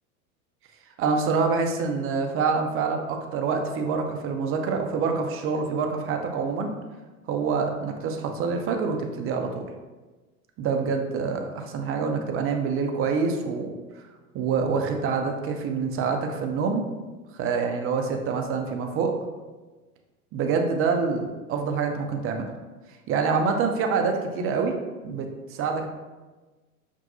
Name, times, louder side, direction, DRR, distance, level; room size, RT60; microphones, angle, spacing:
voice 1, 1.0-6.7 7.3-9.6 10.6-13.7 14.3-16.8 17.4-19.1 20.3-22.5 23.1-24.7 25.0-25.9, right 5 dB, 30° right, 4 dB, 0.5 m, -26 dB
5.7 x 2.6 x 2.6 m, 1.3 s
hypercardioid pair, 90°, 44 cm